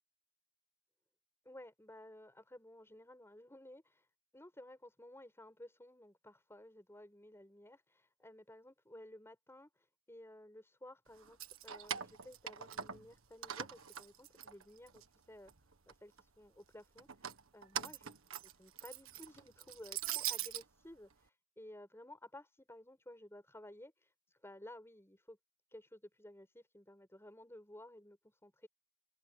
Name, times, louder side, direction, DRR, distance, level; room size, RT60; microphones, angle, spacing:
voice 1, 1.4-4.1 4.3-15.0 15.3-15.5 15.9-18.2 18.4-25.4 25.7-28.7, left 1 dB, 10° left, 6.8 m, -55 dB
Keys jangling, 11.2-13.1 13.4-15.0 15.5-16.2 17.0-20.6, right 10 dB, 80° right, 1.6 m, -42 dB
open air
head